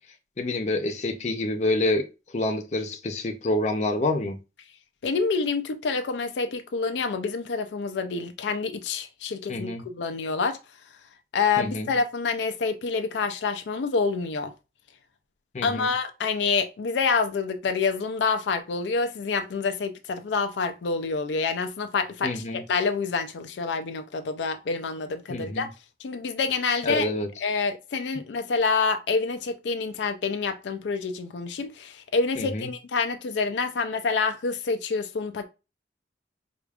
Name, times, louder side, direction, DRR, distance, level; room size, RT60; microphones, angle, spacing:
voice 1, 0.4-2.1 2.3-4.4 9.5-9.8 11.6-11.9 15.5-15.9 22.2-22.6 25.3-25.7 26.8-27.3 32.4-32.7, left 2 dB, 40° left, 0.6 m, -27 dB
voice 2, 5.0-10.6 11.3-14.5 15.6-22.4 22.7-25.7 26.0-27.1 27.4-35.5, left 4 dB, 85° left, 0.4 m, -27 dB
4.9 x 2.4 x 2.4 m
head